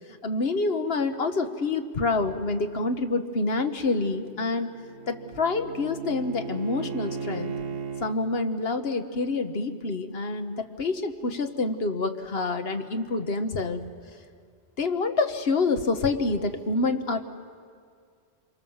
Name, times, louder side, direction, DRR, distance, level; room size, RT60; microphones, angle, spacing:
voice 1, 0.2-4.7 5.1-7.5 8.0-13.8 14.8-17.2, left 3 dB, 65° left, 7 dB, 1.4 m, -27 dB
Bowed string instrument, 4.1-8.2, right 5 dB, 65° right, 1.2 m, -36 dB
27.0 x 23.5 x 7.2 m, 2.1 s
omnidirectional pair, 1.1 m